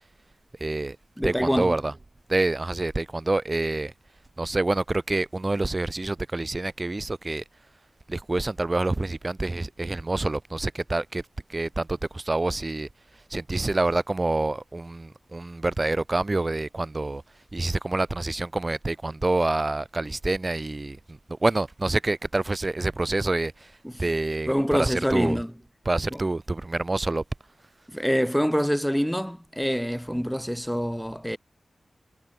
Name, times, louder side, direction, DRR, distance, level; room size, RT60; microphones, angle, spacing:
voice 1, 0.6-1.0 1.2-1.9 2.3-3.9 4.4-7.4 8.1-11.2 11.5-12.9 13.3-17.2 17.5-25.4 25.9-27.2, right 2 dB, 30° right, 1.9 m, -27 dB
voice 2, 1.2-1.7 23.8-23.9 24.5-25.5 26.1-26.2 27.9-31.4, equal, ahead, 0.4 m, -25 dB
cardioid pair, 65°, 0 cm